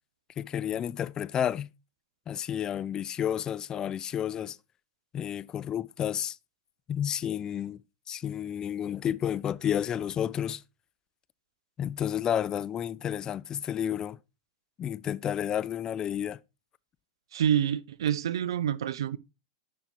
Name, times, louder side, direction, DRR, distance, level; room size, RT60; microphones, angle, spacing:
voice 1, 0.4-1.7 2.3-4.6 5.1-6.4 6.9-7.8 8.1-10.6 11.8-14.2 14.8-16.4, left 9 dB, 30° left, 0.3 m, -31 dB
voice 2, 17.3-19.2, right 9 dB, 70° right, 0.4 m, -27 dB
11.0 x 5.4 x 2.9 m
hypercardioid pair, 100°, 3 cm